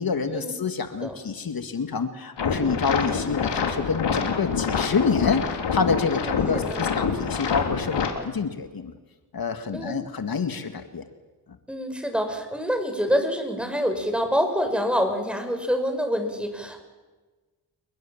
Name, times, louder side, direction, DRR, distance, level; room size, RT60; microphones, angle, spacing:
voice 1, 0.0-8.9 9.3-11.0, left 5 dB, 55° left, 7 dB, 2.3 m, -27 dB
sound 1, 2.4-8.1, left 6 dB, 70° left, 3.6 m, -26 dB
voice 2, 6.1-6.9 9.7-10.1 11.7-16.8, equal, ahead, 6 dB, 6.3 m, -26 dB
28.5 x 21.5 x 7.5 m, 1.3 s
cardioid pair, 65°, 43 cm